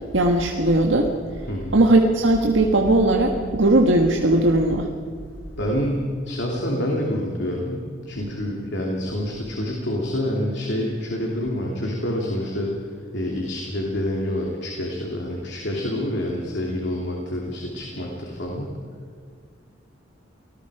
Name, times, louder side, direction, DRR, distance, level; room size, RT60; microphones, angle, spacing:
voice 1, 0.1-1.1 1.7-4.9, right 2 dB, 75° right, 1 dB, 1.7 m, -18 dB
voice 2, 1.5-1.8 5.6-12.7 13.1-18.7, left 1 dB, 65° left, -1 dB, 3.0 m, -27 dB
29.0 x 19.0 x 5.0 m, 2.1 s
head